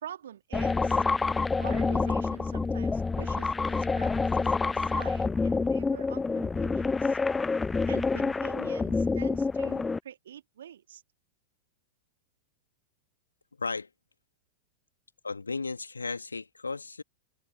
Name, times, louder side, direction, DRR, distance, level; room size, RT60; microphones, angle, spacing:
voice 1, 0.0-1.0 1.6-7.2 7.9-11.0, right 10 dB, 65° right, 2.7 m, -46 dB
sound 1, 0.5-10.0, left 4 dB, 10° left, 0.6 m, -27 dB
voice 2, 13.6-13.9 15.2-17.0, left 4 dB, 80° left, 2.0 m, -34 dB
figure-of-eight pair, 90°, 0 cm